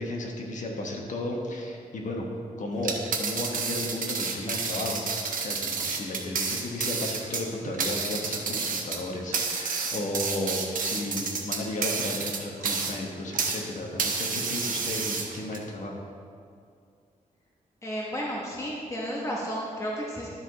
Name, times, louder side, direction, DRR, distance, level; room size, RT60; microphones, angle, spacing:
voice 1, 0.0-2.2 2.6-5.0 5.4-16.0, left 1 dB, 60° left, 1 dB, 1.2 m, -34 dB
sound 1, 2.8-13.6 14.0-15.6, right 5 dB, 70° right, 0.9 m, -30 dB
voice 2, 17.8-20.3, equal, 20° left, -4 dB, 1.0 m, -32 dB
11.5 x 4.8 x 4.0 m, 2.3 s
wide cardioid pair, 110°, 15 cm